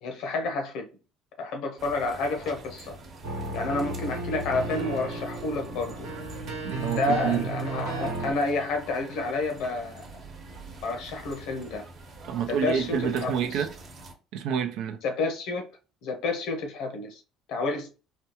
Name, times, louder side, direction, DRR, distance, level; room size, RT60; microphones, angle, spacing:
voice 1, 0.0-0.9 1.4-3.0 3.5-6.0 6.9-10.1 10.8-11.9 12.5-13.3 15.0-15.7 16.0-17.2 17.5-17.9, left 3 dB, 70° left, 0.9 m, -29 dB
sound 1, 1.8-14.1, right 2 dB, 50° right, 1.0 m, -45 dB
sound 2, 3.2-8.3, right 2 dB, 90° right, 1.1 m, -34 dB
voice 2, 6.6-7.5 12.3-13.7 14.3-15.0, right 8 dB, 70° right, 0.5 m, -28 dB
4.2 x 2.3 x 2.9 m
hypercardioid pair, 70°, 0 cm